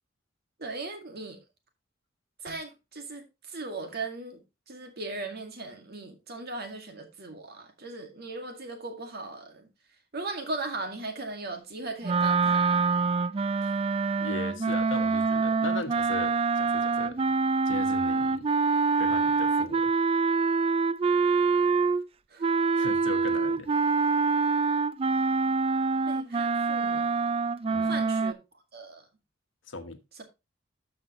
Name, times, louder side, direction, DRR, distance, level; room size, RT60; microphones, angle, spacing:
voice 1, 0.6-1.4 2.4-4.4 4.7-9.7 10.1-12.8 22.3-22.6 26.1-27.3 27.9-28.4 28.7-29.1, right 3 dB, 55° right, 2.1 m, -38 dB
sound 1, 12.0-22.1 22.4-28.3, right 4 dB, 30° right, 0.4 m, -25 dB
voice 2, 14.2-17.3 17.6-18.5 19.0-19.9 22.8-23.7 27.7-28.0 29.7-30.0, left 3 dB, 75° left, 1.2 m, -38 dB
12.5 x 5.7 x 2.9 m
head